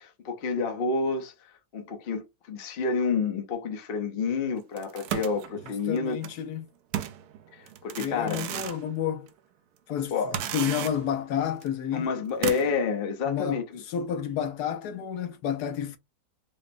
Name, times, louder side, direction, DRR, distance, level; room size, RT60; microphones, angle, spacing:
voice 1, 0.0-1.3 1.7-6.2 7.5-8.4 10.1-10.4 11.9-13.8, left 5 dB, 45° left, 0.7 m, -29 dB
sound 1, 4.8-6.3 6.9-8.9 9.3-9.4 10.3-11.2 11.6-11.7 12.4-12.8, right 10 dB, 75° right, 1.0 m, -34 dB
voice 2, 5.7-6.7 8.0-9.3 9.9-12.1 13.3-16.0, left 9 dB, 75° left, 1.1 m, -30 dB
5.1 x 2.1 x 2.6 m
omnidirectional pair, 1.8 m